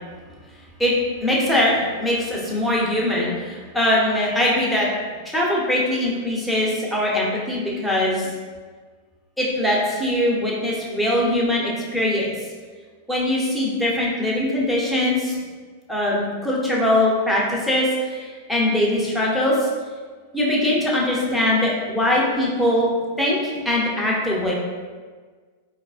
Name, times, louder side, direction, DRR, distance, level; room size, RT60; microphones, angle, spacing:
voice 1, 1.2-4.9 5.2-8.3 9.4-12.3 13.1-15.4 15.9-19.7 20.3-22.9 23.2-24.5, left 1 dB, ahead, -5 dB, 0.8 m, -21 dB
3.9 x 2.4 x 2.4 m, 1.5 s
hypercardioid pair, 100°, 0 cm